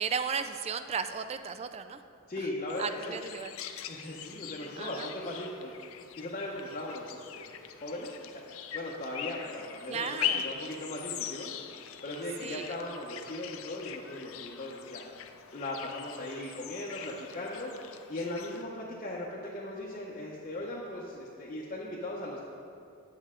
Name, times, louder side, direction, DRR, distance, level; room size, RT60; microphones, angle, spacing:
voice 1, 0.0-2.0 2.8-3.5 4.8-5.1 9.9-10.4 12.4-12.7, right 6 dB, 30° right, 10 dB, 0.3 m, -34 dB
voice 2, 2.3-3.2 3.9-5.7 6.2-8.4 8.7-11.5 12.0-15.0 15.5-17.7 18.1-22.4, left 1 dB, 35° left, -5 dB, 0.8 m, -38 dB
sound 1, 2.7-18.6, left 9 dB, 65° left, 0.5 m, -41 dB
9.0 x 7.6 x 3.7 m, 2.4 s
head